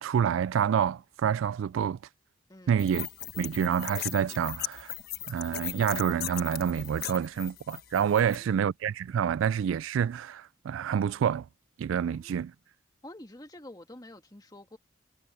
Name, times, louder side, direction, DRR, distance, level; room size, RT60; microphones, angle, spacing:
voice 1, 0.0-2.0 2.7-3.1 3.4-4.9 5.3-11.5 11.8-12.5, right 8 dB, 85° right, 0.3 m, -28 dB
voice 2, 2.5-2.8 8.2-8.7 12.0-12.5 13.0-14.8, left 1 dB, 20° left, 1.8 m, -49 dB
sound 1, 2.8-8.4, left 12 dB, 50° left, 1.4 m, -38 dB
head